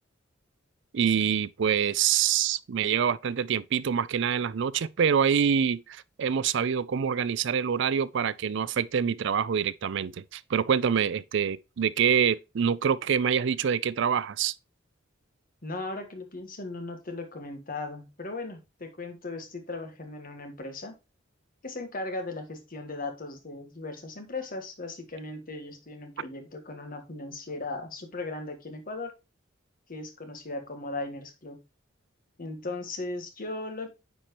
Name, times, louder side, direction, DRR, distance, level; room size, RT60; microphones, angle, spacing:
voice 1, 0.9-14.5, right 7 dB, 65° right, 0.4 m, -26 dB
voice 2, 15.6-21.0 21.6-29.1 29.9-31.6 32.4-33.9, left 2 dB, 45° left, 1.5 m, -37 dB
9.5 x 4.4 x 3.0 m
head